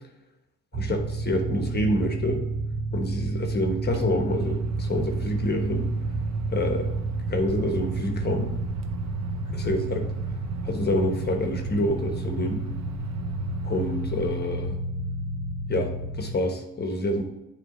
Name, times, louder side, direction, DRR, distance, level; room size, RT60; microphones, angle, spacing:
voice 1, 0.7-2.4 2.9-5.9 6.5-6.9 7.3-8.5 9.5-10.1 10.6-12.6 13.6-14.8 15.7-17.2, left 1 dB, 35° left, 4 dB, 1.1 m, -27 dB
sound 1, 0.7-16.3, right 2 dB, 25° right, 0.6 m, -31 dB
Microwave oven, 3.9-14.3, right 5 dB, 60° right, 0.7 m, -36 dB
8.3 x 3.3 x 3.9 m, 0.90 s
cardioid pair, 90°, 30 cm